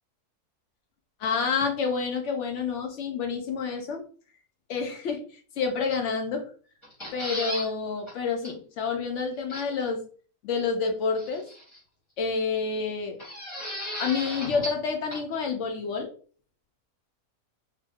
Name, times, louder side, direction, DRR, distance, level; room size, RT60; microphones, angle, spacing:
voice 1, 1.2-4.0 4.7-5.2 5.6-6.4 7.1-10.0 10.4-11.5 12.2-13.2 14.0-16.1, left 5 dB, 65° left, 4 dB, 0.7 m, -28 dB
sound 1, 6.8-7.7 8.1-8.2 8.4-8.5 9.5-9.9 11.2-11.8 13.2-14.8 15.1-15.2, equal, 25° left, 0.8 m, -36 dB
2.9 x 2.1 x 3.4 m, 0.41 s
omnidirectional pair, 1.7 m